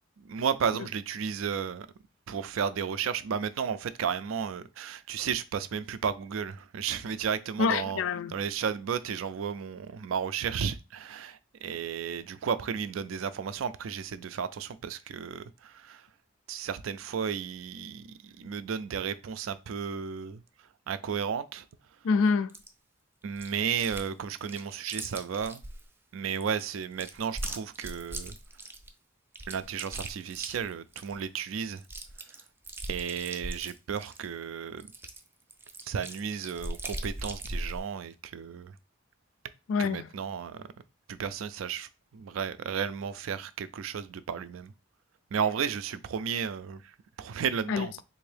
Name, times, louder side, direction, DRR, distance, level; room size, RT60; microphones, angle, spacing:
voice 1, 0.2-1.9 2.3-8.0 8.3-16.0 16.5-20.4 20.9-21.7 23.2-25.6 26.1-28.3 29.5-31.8 32.9-34.9 35.8-38.7 39.8-40.7 41.1-44.7 45.3-47.9, right 7 dB, 85° right, 0.4 m, -33 dB
voice 2, 7.6-8.4 22.0-22.5 39.7-40.1 47.7-48.0, left 5 dB, 75° left, 0.3 m, -26 dB
Chewing mastication, 22.5-22.7 23.4-24.1 24.3-25.8 26.4-28.9 29.3-31.2 31.5-31.6 31.8-34.3 34.8-37.8, right 1 dB, 10° right, 0.3 m, -39 dB
3.5 x 2.7 x 3.3 m
head